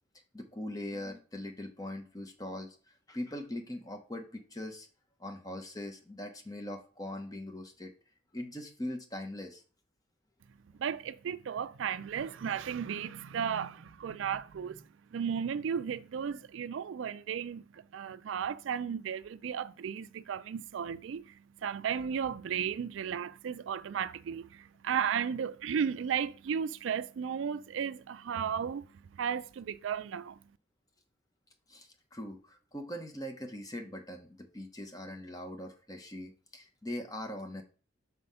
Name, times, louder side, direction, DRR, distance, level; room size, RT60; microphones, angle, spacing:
voice 1, 0.3-2.8 3.1-4.9 5.2-7.9 8.3-9.6 31.7-37.6, left 1 dB, 20° left, 0.9 m, -41 dB
voice 2, 10.8-14.8 15.1-28.8 29.1-30.4, right 7 dB, 75° right, 0.3 m, -34 dB
5.6 x 4.3 x 5.5 m
head